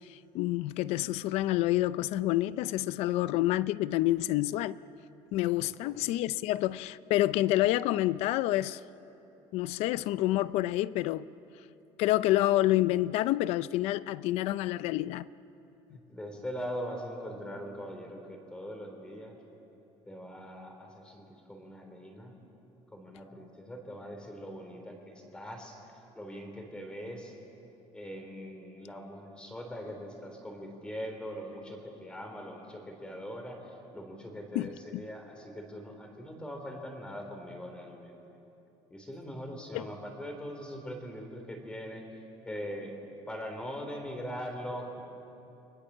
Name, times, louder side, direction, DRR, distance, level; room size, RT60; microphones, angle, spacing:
voice 1, 0.1-4.8 5.3-8.8 9.5-11.3 12.0-15.3 34.5-35.0 39.7-39.9, left 15 dB, 75° left, 0.6 m, -28 dB
voice 2, 5.6-5.9 15.9-19.4 20.0-22.4 22.9-25.8 26.1-27.3 27.9-38.2 38.9-45.0, equal, 10° left, 3.4 m, -41 dB
30.0 x 23.0 x 7.4 m
cardioid pair, 175°, 11 cm